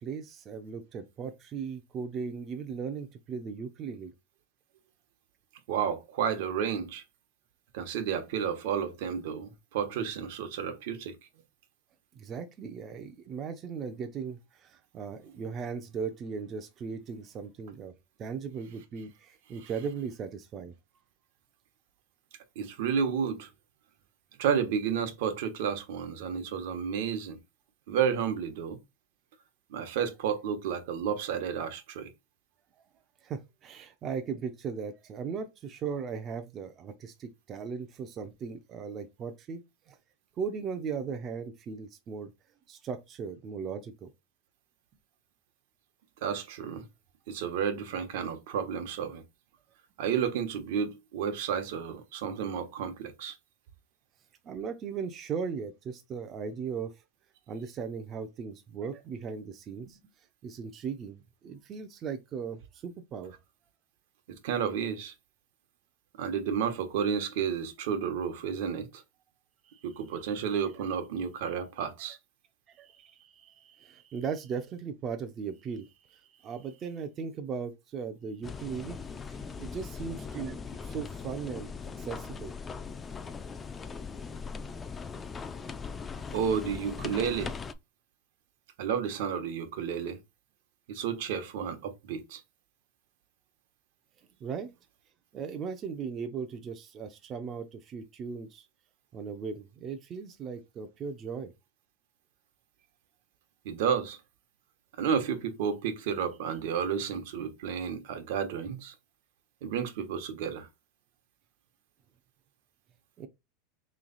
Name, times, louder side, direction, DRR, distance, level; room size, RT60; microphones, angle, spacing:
voice 1, 0.0-4.1 12.1-17.9 18.2-20.7 33.2-40.0 40.4-42.3 42.7-44.1 54.4-57.0 57.5-63.3 69.6-69.9 70.2-70.3 72.7-79.0 79.2-82.5 94.4-94.7 95.3-98.7 99.1-101.5 113.2-113.3, right 6 dB, 30° right, 0.5 m, -38 dB
voice 2, 5.7-7.0 7.7-11.1 19.6-19.7 22.5-23.5 24.4-27.4 27.9-28.8 29.7-32.1 46.2-46.9 47.3-49.2 50.0-53.4 64.3-65.1 66.2-69.0 69.8-72.2 86.3-87.6 88.8-90.2 90.9-92.4 103.6-104.2 105.0-108.9 109.6-110.7, right 7 dB, 70° right, 1.0 m, -31 dB
sound 1, 78.4-87.7, left 5 dB, 20° left, 0.4 m, -40 dB
3.3 x 3.1 x 4.0 m
supercardioid pair, 135°, 0 cm